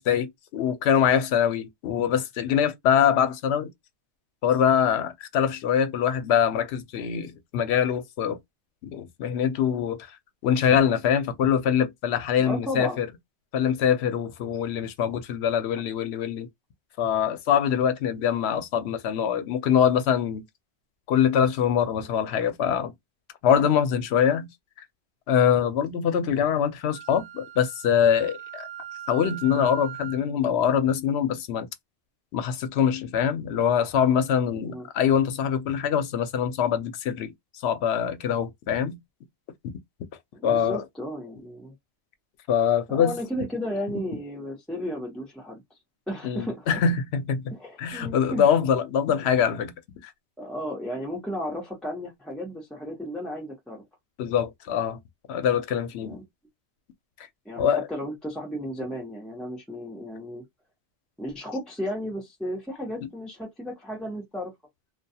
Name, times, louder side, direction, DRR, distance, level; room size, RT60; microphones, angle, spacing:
voice 1, 0.0-3.7 4.4-8.4 8.8-10.2 10.4-13.1 13.5-16.5 17.0-20.4 21.1-22.9 23.4-24.5 25.3-28.7 29.1-31.7 32.3-37.3 37.6-39.0 40.4-40.8 42.5-43.2 46.2-47.5 47.8-49.7 54.2-55.0 55.3-56.2 57.6-57.8, left 8 dB, 90° left, 0.8 m, -24 dB
voice 2, 12.4-13.0 15.8-15.9 34.5-34.9 40.3-41.7 42.9-45.6 46.1-46.7 47.5-48.5 50.4-53.8 56.0-56.2 57.4-60.4 61.2-64.5, equal, ahead, 0.8 m, -34 dB
Wind instrument woodwind instrument, 26.9-30.3, right 10 dB, 75° right, 0.8 m, -40 dB
2.3 x 2.3 x 2.7 m
omnidirectional pair, 1.1 m